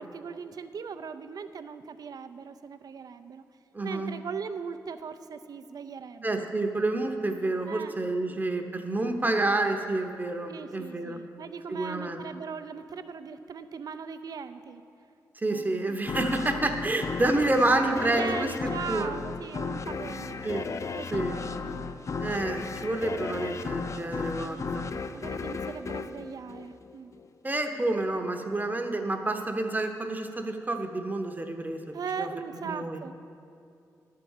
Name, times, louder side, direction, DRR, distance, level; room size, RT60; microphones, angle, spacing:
voice 1, 0.0-3.4 3.8-6.5 7.7-8.0 8.3-8.4 10.4-14.8 15.5-16.0 18.2-20.4 20.9-22.3 24.4-27.1 31.9-33.1, right 6 dB, 65° right, 10 dB, 0.5 m, -39 dB
voice 2, 3.7-4.1 6.2-11.2 11.7-12.2 15.4-18.5 18.9-19.1 20.4-20.6 21.1-21.4 22.2-24.9 27.4-32.3 32.6-33.0, right 2 dB, 25° right, 4 dB, 0.8 m, -29 dB
sound 1, 16.1-27.3, left 4 dB, 45° left, 0.4 m, -35 dB
11.0 x 4.7 x 7.2 m, 2.5 s
cardioid pair, 60°, 7 cm